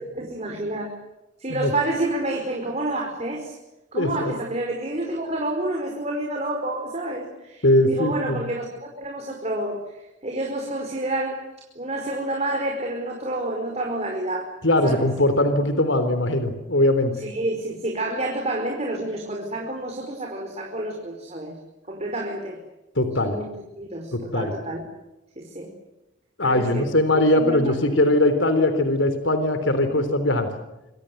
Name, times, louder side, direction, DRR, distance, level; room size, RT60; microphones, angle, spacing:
voice 1, 0.1-1.0 1.4-3.5 3.9-11.5 11.7-14.5 14.8-15.1 17.2-21.6 21.9-22.6 23.2-23.5 23.7-24.9 25.3-25.7 26.4-26.8 27.1-27.7, right 1 dB, 35° right, 1 dB, 5.1 m, -29 dB
voice 2, 3.9-4.3 7.6-8.4 14.6-17.1 23.0-23.4 24.1-24.5 26.4-30.5, left 1 dB, 75° left, 9 dB, 3.7 m, -20 dB
27.0 x 25.5 x 8.0 m, 0.97 s
head